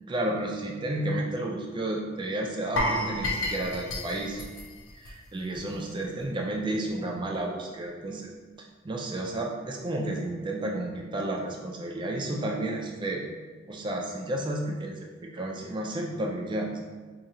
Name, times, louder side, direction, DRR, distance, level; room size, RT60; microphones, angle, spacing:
voice 1, 0.1-4.5 5.0-8.3 8.6-13.2 13.7-16.8, right 1 dB, 25° right, 0 dB, 0.4 m, -32 dB
sound 1, 2.8-5.8 6.0-6.2 6.7-6.8, left 1 dB, 85° left, 0.7 m, -31 dB
4.9 x 2.8 x 2.7 m, 1.4 s
head